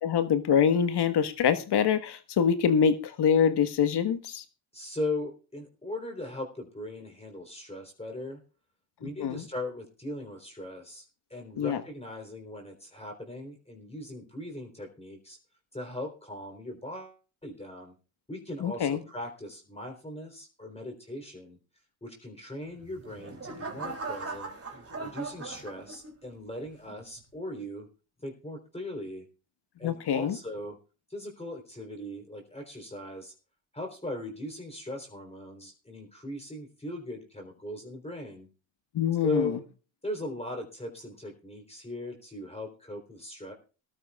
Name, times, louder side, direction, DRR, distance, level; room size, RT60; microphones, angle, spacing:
voice 1, 0.0-4.4 9.0-9.4 11.6-11.8 18.6-19.0 29.8-30.4 38.9-39.6, left 7 dB, 55° left, 10 dB, 1.5 m, -25 dB
voice 2, 4.7-8.4 9.0-11.0 11.3-15.4 15.7-17.9 18.3-21.6 22.0-24.5 25.0-27.9 28.2-29.2 29.8-30.8 31.1-33.3 33.7-38.5 39.2-39.6 40.0-43.5, left 1 dB, 10° left, 1 dB, 3.7 m, -39 dB
sound 1, 22.8-26.3 26.9-27.2, right 3 dB, 30° right, 3.4 m, -39 dB
20.0 x 12.5 x 2.4 m, 0.34 s
hypercardioid pair, 60°, 49 cm